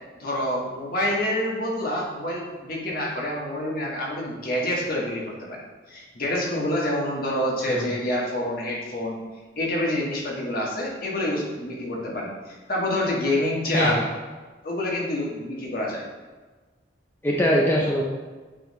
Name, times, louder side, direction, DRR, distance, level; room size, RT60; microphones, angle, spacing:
voice 1, 0.2-5.6 5.9-9.2 9.6-14.0 14.6-16.0, left 1 dB, 50° left, -3 dB, 1.5 m, -27 dB
voice 2, 7.7-8.0 13.7-14.0 17.2-18.0, equal, 10° left, -3 dB, 0.5 m, -22 dB
8.9 x 3.5 x 3.1 m, 1.3 s
head